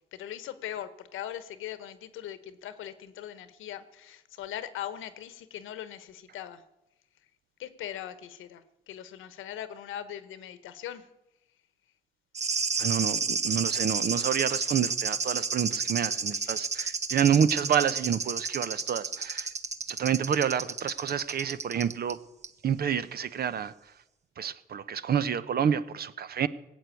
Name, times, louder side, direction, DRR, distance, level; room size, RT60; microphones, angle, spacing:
voice 1, 0.1-6.6 7.6-11.0, left 11 dB, 85° left, 13 dB, 1.1 m, -40 dB
sound 1, 12.3-22.1 22.4-22.5, right 5 dB, 35° right, 1.0 m, -31 dB
voice 2, 12.8-19.5 19.9-22.2 22.6-23.7 24.4-26.5, right 8 dB, 50° right, 15 dB, 0.8 m, -28 dB
17.5 x 7.9 x 8.4 m, 0.94 s
cardioid pair, 90°, 20 cm